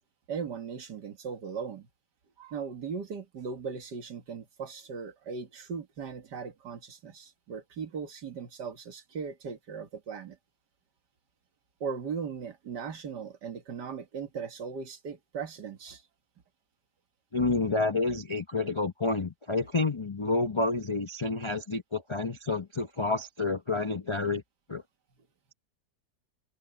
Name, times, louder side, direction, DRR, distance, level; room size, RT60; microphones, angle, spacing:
voice 1, 0.3-1.9 2.4-10.4 11.8-16.0, right 6 dB, 75° right, 2.3 m, -38 dB
voice 2, 17.3-24.4 24.7-24.8, left 3 dB, 40° left, 0.4 m, -29 dB
omnidirectional pair, 1.8 m